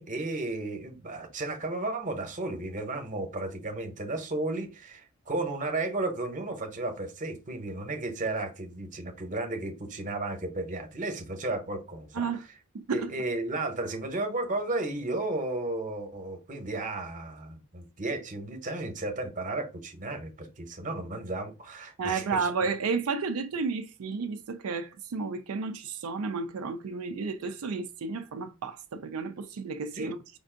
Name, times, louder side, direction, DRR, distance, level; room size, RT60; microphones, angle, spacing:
voice 1, 0.0-12.3 12.9-22.5 29.9-30.2, right 2 dB, 35° right, 0.9 m, -34 dB
voice 2, 12.7-13.1 22.0-30.2, right 4 dB, 80° right, 0.4 m, -32 dB
5.2 x 2.5 x 3.7 m
head